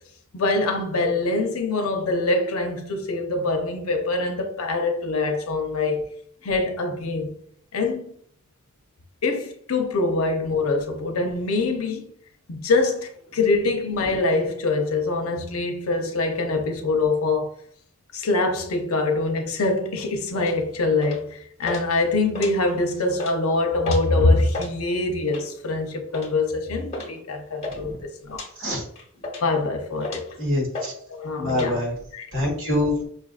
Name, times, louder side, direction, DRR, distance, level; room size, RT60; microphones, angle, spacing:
voice 1, 0.3-6.0 6.4-7.4 7.7-8.1 9.2-12.1 12.5-17.5 18.1-28.4 29.4-30.3 31.1-31.8 32.1-32.3, left 3 dB, 75° left, 0.7 m, -24 dB
sound 1, 20.3-20.6 21.0-21.3 21.6-21.8 22.2-22.8 23.1-23.4 23.8-24.1 24.4-24.7 25.3-25.6 26.1-26.3 26.9-27.1 27.4-27.8 28.3-28.5 29.0-29.6 30.0-30.3 30.7-30.9 31.2-31.7, left 2 dB, 30° left, 1.0 m, -33 dB
voice 2, 27.7-28.0 28.6-28.9 30.4-30.9 31.4-31.9 32.3-33.1, left 1 dB, 60° right, 1.6 m, -25 dB
5.5 x 2.5 x 2.4 m
head